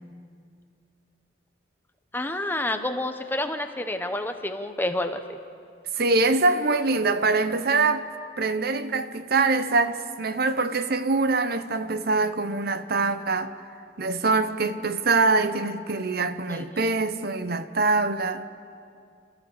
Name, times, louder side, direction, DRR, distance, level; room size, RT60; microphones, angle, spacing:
voice 1, 2.1-5.2 16.5-16.7, left 1 dB, 10° left, 0.9 m, -29 dB
voice 2, 5.9-8.1 8.4-13.5 14.0-18.4, right 3 dB, 50° right, 0.8 m, -24 dB
29.5 x 14.0 x 7.2 m
head